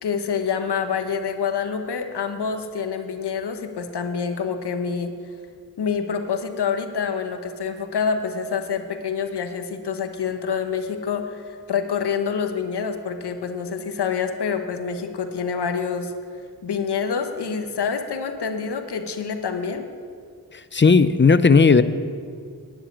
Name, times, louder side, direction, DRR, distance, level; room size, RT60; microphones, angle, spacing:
voice 1, 0.0-5.1 5.8-16.1 16.6-19.9, left 6 dB, 80° left, 7 dB, 1.1 m, -27 dB
voice 2, 20.7-21.8, left 4 dB, 30° left, 13 dB, 0.6 m, -14 dB
10.0 x 7.7 x 8.8 m, 2.2 s
cardioid pair, 50°, 40 cm